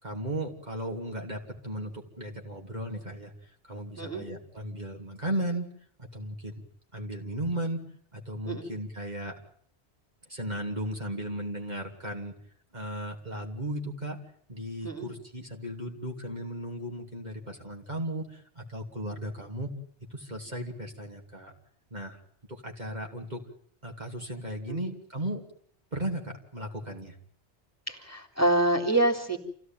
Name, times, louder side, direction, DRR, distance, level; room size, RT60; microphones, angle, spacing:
voice 1, 0.0-5.7 6.0-6.6 6.9-9.4 10.3-12.3 12.7-14.2 14.5-19.7 20.1-21.5 21.9-22.2 22.5-23.5 23.8-25.5 25.9-27.2, right 1 dB, 40° right, 1 dB, 3.2 m, -36 dB
voice 2, 27.9-29.4, right 2 dB, 15° left, 2 dB, 3.5 m, -26 dB
28.0 x 16.5 x 9.2 m, 0.63 s
omnidirectional pair, 1.1 m